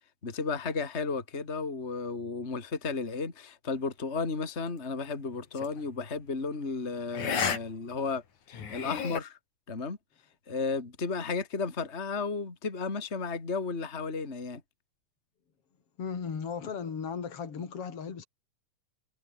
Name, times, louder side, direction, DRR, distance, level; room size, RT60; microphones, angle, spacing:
voice 1, 0.2-9.4 9.7-10.0 10.5-14.6, left 4 dB, 20° left, 2.9 m, -33 dB
sound 1, 5.6-5.8 7.1-7.6 7.9-8.0 8.5-9.2, left 7 dB, 75° left, 4.5 m, -32 dB
voice 2, 16.0-18.3, left 6 dB, 50° left, 4.0 m, -36 dB
omnidirectional pair, 3.5 m